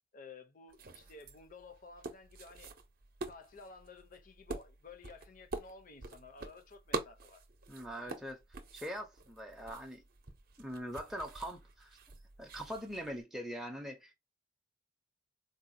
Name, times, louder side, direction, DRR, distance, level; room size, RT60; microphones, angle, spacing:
voice 1, 0.1-2.7 3.3-7.5, left 3 dB, 45° left, 0.6 m, -54 dB
sound 1, 0.7-13.2, right 3 dB, 50° right, 0.6 m, -46 dB
voice 2, 7.7-8.4 8.7-10.0 10.6-12.0 12.4-14.1, equal, ahead, 0.5 m, -42 dB
4.0 x 2.1 x 2.6 m
head